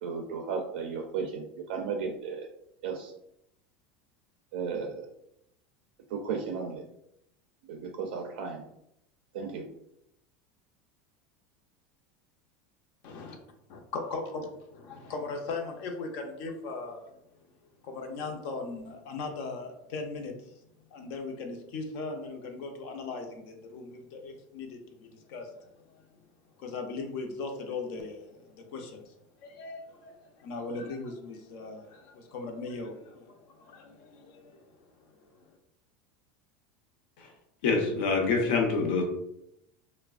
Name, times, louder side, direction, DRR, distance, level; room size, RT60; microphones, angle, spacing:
voice 1, 0.0-2.5 2.8-3.1 4.5-5.0 6.1-6.8 7.7-8.6 9.3-9.6, right 5 dB, 80° right, 3 dB, 0.4 m, -34 dB
voice 2, 13.0-13.4 13.7-17.1 17.8-20.7 20.9-26.2 26.6-35.6, left 3 dB, 45° left, 3 dB, 0.4 m, -39 dB
voice 3, 37.6-39.0, left 4 dB, 85° left, 2 dB, 0.7 m, -26 dB
3.2 x 2.0 x 2.3 m, 0.80 s
supercardioid pair, 180°, 5 cm